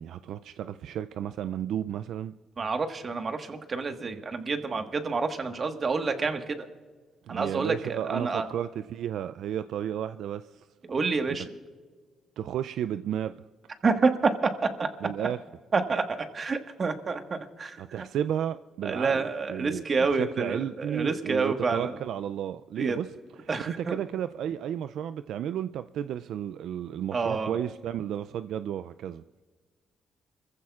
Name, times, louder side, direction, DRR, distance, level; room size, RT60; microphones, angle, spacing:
voice 1, 0.0-2.3 7.2-10.7 11.3-11.4 12.4-13.4 15.0-15.4 17.8-23.1 23.4-29.2, right 10 dB, 75° right, 0.3 m, -33 dB
voice 2, 2.6-6.6 7.3-8.5 10.9-11.5 13.8-14.9 15.2-15.3 15.7-17.8 18.8-21.9 22.8-23.0 23.5-24.0 27.1-27.5, right 4 dB, 40° right, 1.4 m, -28 dB
29.0 x 15.0 x 2.4 m
cardioid pair, 90°, 0 cm